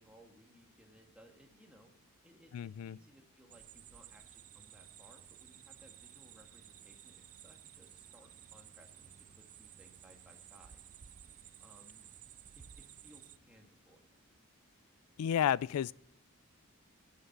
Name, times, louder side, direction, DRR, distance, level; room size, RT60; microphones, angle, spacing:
voice 1, 0.0-1.9 2.2-10.8 11.6-12.1 12.6-14.0, equal, 5° right, 1.7 m, -62 dB
voice 2, 2.5-3.0 15.2-15.9, left 9 dB, 85° left, 0.3 m, -31 dB
sound 1, 3.5-13.4, right 10 dB, 35° right, 0.3 m, -55 dB
16.0 x 5.6 x 5.8 m
head